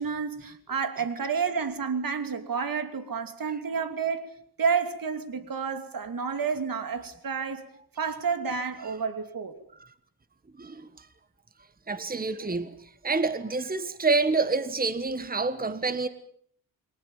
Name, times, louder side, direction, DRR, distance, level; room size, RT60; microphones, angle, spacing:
voice 1, 0.0-4.3 4.6-7.6 8.0-9.6, right 6 dB, 55° right, 2.9 m, -30 dB
voice 2, 11.9-12.7 13.0-16.1, right 3 dB, 20° right, 1.5 m, -27 dB
29.0 x 23.0 x 7.3 m
wide cardioid pair, 110°, 40 cm